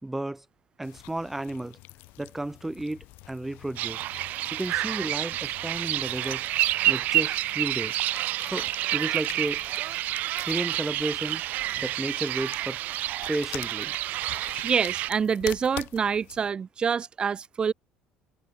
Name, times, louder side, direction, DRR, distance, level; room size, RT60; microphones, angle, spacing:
voice 1, 0.0-0.4 0.8-1.8 2.2-4.0 4.5-6.4 6.9-8.0 8.4-9.6 10.4-11.4 11.8-12.8 13.3-13.9, right 1 dB, 10° right, 4.7 m, -33 dB
sound 1, 0.8-16.5, left 22 dB, 75° left, 5.4 m, -46 dB
sound 2, 3.8-15.1, right 15 dB, 60° right, 1.0 m, -29 dB
voice 2, 14.6-17.7, right 6 dB, 30° right, 5.4 m, -26 dB
cardioid pair, 125°, 3 cm